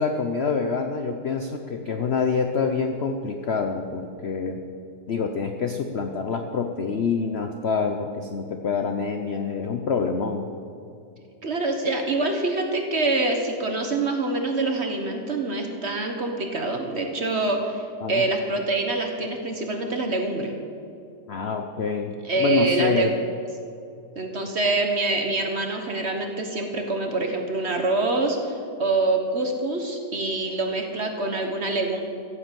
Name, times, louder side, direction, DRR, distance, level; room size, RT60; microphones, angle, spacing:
voice 1, 0.0-4.6 5.1-10.5 18.0-18.3 21.3-23.1, left 5 dB, 55° left, 5 dB, 0.7 m, -26 dB
voice 2, 11.4-20.5 22.2-23.1 24.1-32.0, right 2 dB, 40° right, 4 dB, 1.3 m, -25 dB
15.0 x 7.9 x 7.5 m, 2.6 s
omnidirectional pair, 2.0 m